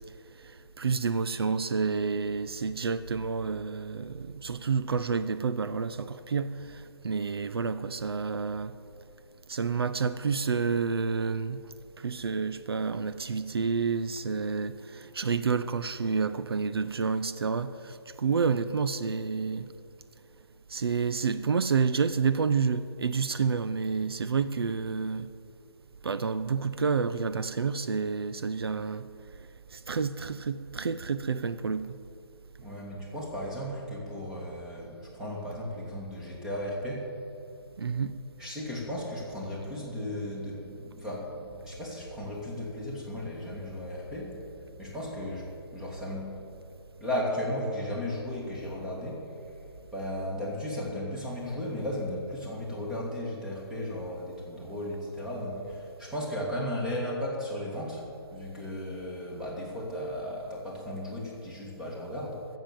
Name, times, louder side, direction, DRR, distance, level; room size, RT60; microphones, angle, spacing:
voice 1, 0.4-8.7 9.5-11.6 12.0-19.7 20.7-25.3 26.0-29.1 29.7-31.8 37.8-38.1, right 5 dB, 70° right, 12 dB, 0.5 m, -29 dB
voice 2, 32.6-37.1 38.4-44.4 44.8-46.4 47.0-49.3 49.9-62.4, left 1 dB, 5° right, -4 dB, 2.2 m, -35 dB
13.0 x 7.4 x 8.9 m, 2.8 s
figure-of-eight pair, 145°, 13 cm